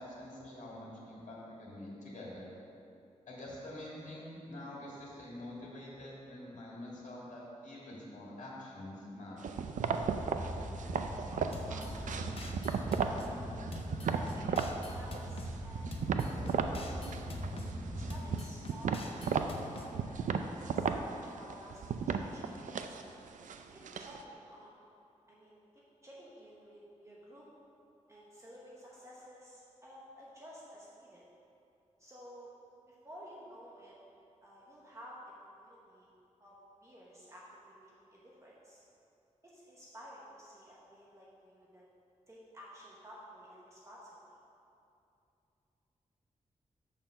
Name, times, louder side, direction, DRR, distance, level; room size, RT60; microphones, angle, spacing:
voice 1, 0.0-2.5 3.3-9.6, left 1 dB, 75° left, -5 dB, 2.0 m, -46 dB
sound 1, 9.4-13.3 13.6-14.7 15.1-16.8 17.0-17.7 18.0-24.2, right 6 dB, 85° right, 0.4 m, -35 dB
Strings with Percussion, 9.9-18.3, right 1 dB, 50° right, 1.8 m, -41 dB
voice 2, 10.9-12.3 12.8-13.4 14.1-15.9 16.2-17.3 18.0-23.0 23.7-24.7 25.3-25.6 26.0-27.5 28.1-31.2 32.0-32.5 32.9-34.0 34.4-36.1 36.4-36.5 36.8-38.8 39.4-41.8 42.3-44.3, equal, 25° right, -5 dB, 1.0 m, -53 dB
sound 2, 11.5-13.3 13.7-15.5 15.9-17.7 18.1-19.9, left 3 dB, 50° left, 0.7 m, -47 dB
6.8 x 5.7 x 6.4 m, 2.7 s
wide cardioid pair, 160°, 13 cm